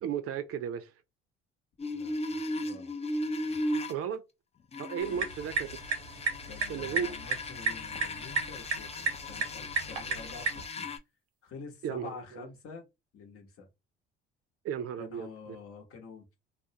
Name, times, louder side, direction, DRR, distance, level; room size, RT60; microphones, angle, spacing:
voice 1, 0.0-0.9 3.9-4.2 4.8-5.7 6.7-7.1 11.8-12.5 14.6-15.6, right 8 dB, 50° right, 0.5 m, -35 dB
sound 1, 1.8-3.9 4.7-11.0, left 1 dB, 20° left, 0.5 m, -37 dB
voice 2, 1.9-2.9 3.5-3.6 5.1-5.3 6.5-10.9 11.4-12.9 13.1-13.7 15.0-16.4, left 5 dB, 50° left, 0.9 m, -48 dB
sound 2, 5.0-10.7, right 5 dB, 85° right, 0.7 m, -34 dB
2.4 x 2.0 x 2.8 m
hypercardioid pair, 65°, 29 cm